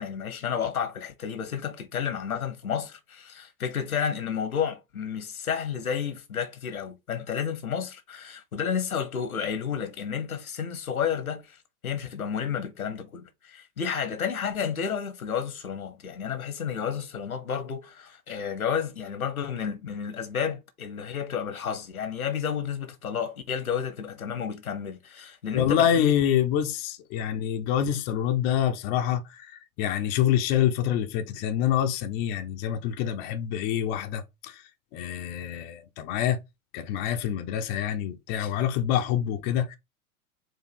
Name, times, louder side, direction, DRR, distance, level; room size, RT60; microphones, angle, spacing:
voice 1, 0.0-11.6 11.8-26.3, left 7 dB, 80° left, 1.0 m, -31 dB
voice 2, 25.5-34.6 34.9-36.4 36.7-39.8, left 10 dB, 25° left, 0.4 m, -26 dB
4.6 x 2.5 x 4.1 m
figure-of-eight pair, 100°, 42 cm